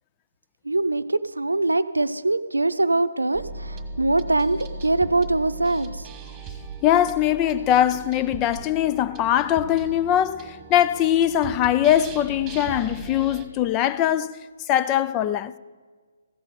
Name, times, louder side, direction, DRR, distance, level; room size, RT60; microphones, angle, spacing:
voice 1, 0.6-6.1, right 2 dB, 80° right, 0.6 m, -23 dB
sound 1, 3.3-13.5, right 3 dB, 15° right, 1.5 m, -38 dB
voice 2, 6.8-14.3 14.7-15.5, left 11 dB, 20° left, 0.4 m, -21 dB
15.0 x 8.3 x 6.8 m
figure-of-eight pair, 135°, 0 cm